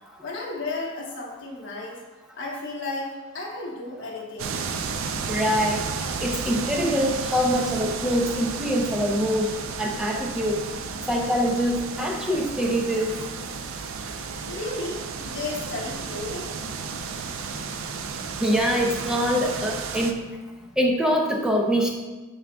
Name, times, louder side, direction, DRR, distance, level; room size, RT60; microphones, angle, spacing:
voice 1, 0.2-2.0 2.4-3.1 3.3-4.6 14.5-16.5, left 2 dB, 55° left, -3 dB, 1.4 m, -33 dB
sound 1, 4.4-20.1, right 5 dB, 60° right, 0.4 m, -33 dB
voice 2, 5.3-5.8 6.2-9.5 9.8-10.6 11.1-13.1 18.4-20.2 20.8-21.9, equal, 5° right, 0 dB, 0.6 m, -24 dB
12.0 x 4.0 x 2.3 m, 1.2 s
head